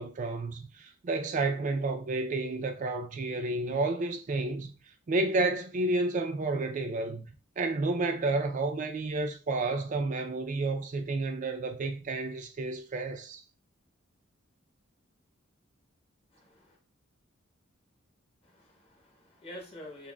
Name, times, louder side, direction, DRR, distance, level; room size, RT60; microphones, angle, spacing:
voice 1, 0.0-4.7 5.1-7.3 7.6-13.4, right 2 dB, 40° right, 0.4 m, -31 dB
voice 2, 16.3-16.8 18.5-20.1, left 1 dB, 30° left, 1.1 m, -47 dB
5.9 x 2.1 x 2.2 m
head